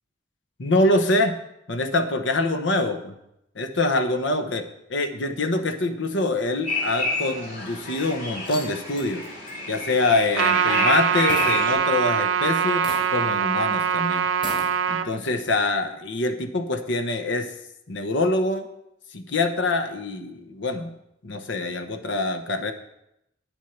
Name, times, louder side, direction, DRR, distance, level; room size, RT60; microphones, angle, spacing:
voice 1, 0.6-1.4 1.7-3.2 3.6-9.2 9.7-14.3 14.9-17.5 17.9-18.7 19.1-20.9 21.2-22.7, left 2 dB, 75° left, 8 dB, 1.0 m, -25 dB
sound 1, 6.7-11.7, left 2 dB, 45° left, 3.5 m, -29 dB
sound 2, 7.0-7.7 8.2-11.0 11.3-12.3 12.8-13.4 13.6-13.7 14.3-14.7, left 1 dB, 30° left, 3.2 m, -39 dB
Trumpet, 10.4-15.1, right 7 dB, 85° right, 0.6 m, -23 dB
9.1 x 8.2 x 5.9 m, 0.81 s
head